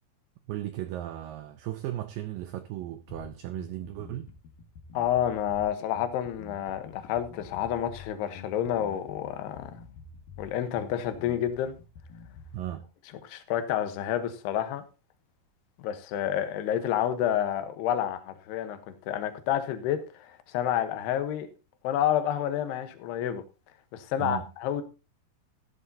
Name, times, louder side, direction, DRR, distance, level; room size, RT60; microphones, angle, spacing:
voice 1, 0.5-4.3 12.5-12.9 24.2-24.5, right 13 dB, 80° right, 2.0 m, -36 dB
Bass guitar, 3.1-12.7, left 5 dB, 65° left, 2.9 m, -48 dB
voice 2, 4.9-9.7 10.4-11.7 13.2-14.8 15.8-21.5 21.8-23.4 23.9-24.8, left 10 dB, 85° left, 3.1 m, -29 dB
15.0 x 11.0 x 2.7 m
omnidirectional pair, 4.7 m